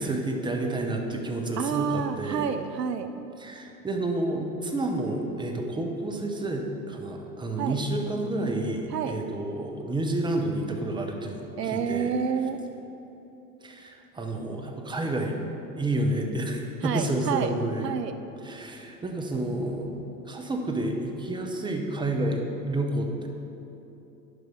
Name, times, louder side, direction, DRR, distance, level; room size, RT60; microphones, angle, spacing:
voice 1, 0.0-2.4 3.4-12.1 13.6-15.3 15.8-17.9 18.4-19.9 20.3-23.3, right 1 dB, 10° right, 2 dB, 0.8 m, -30 dB
voice 2, 1.6-3.1 7.6-7.8 8.9-9.2 11.6-12.6 16.8-17.5 17.8-18.2, right 7 dB, 75° right, 9 dB, 0.6 m, -29 dB
11.5 x 5.3 x 3.7 m, 2.9 s
figure-of-eight pair, 80°, 49 cm